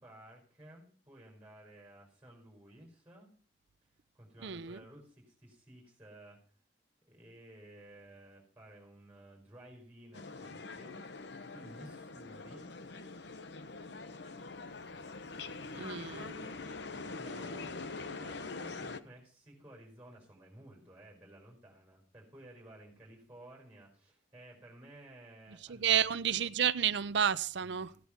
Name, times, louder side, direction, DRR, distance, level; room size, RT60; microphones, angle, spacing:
voice 1, 0.0-3.3 3.8-3.9 4.1-6.4 7.0-11.0 11.5-12.8 15.7-26.1 27.6-28.0, right 1 dB, 10° right, 5.1 m, -55 dB
voice 2, 4.4-4.8 15.8-16.2 25.7-27.9, right 8 dB, 65° right, 0.6 m, -30 dB
sound 1, 10.1-19.0, left 3 dB, 60° left, 0.9 m, -44 dB
15.5 x 9.5 x 5.9 m
head